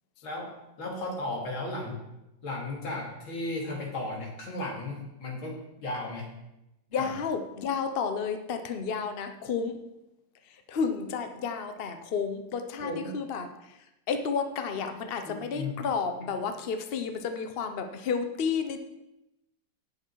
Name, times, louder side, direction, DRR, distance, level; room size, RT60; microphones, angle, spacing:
voice 1, 0.2-2.0 2.4-6.3 6.9-7.1 12.8-13.1 15.2-15.7, left 2 dB, 85° left, -1 dB, 3.4 m, -35 dB
voice 2, 6.9-9.8 10.7-13.5 14.1-18.8, left 5 dB, 45° left, 7 dB, 0.8 m, -31 dB
17.0 x 6.6 x 4.7 m, 0.92 s
omnidirectional pair, 2.2 m